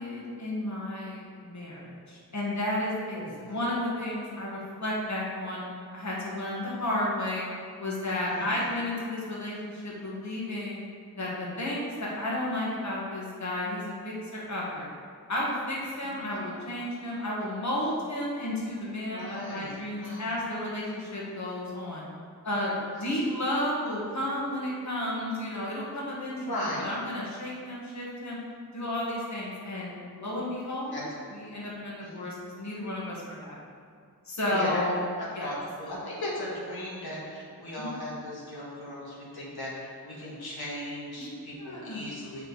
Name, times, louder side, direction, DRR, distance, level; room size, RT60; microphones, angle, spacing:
voice 1, 0.0-5.6 5.9-7.5 7.8-10.8 11.2-14.9 15.3-22.1 22.4-26.6 26.8-28.4 28.7-31.0 31.3-33.5 34.2-35.0 35.3-35.5 37.8-38.0 41.2-41.3 41.6-42.1, left 1 dB, 50° left, -5 dB, 1.6 m, -32 dB
voice 2, 3.1-3.6 8.2-8.7 16.1-16.4 19.1-20.3 22.9-23.4 26.4-26.9 30.9-31.0 32.0-32.3 34.5-34.8 35.2-42.5, left 1 dB, 80° left, -6 dB, 1.6 m, -38 dB
7.4 x 4.8 x 4.1 m, 2.3 s
wide cardioid pair, 85°, 37 cm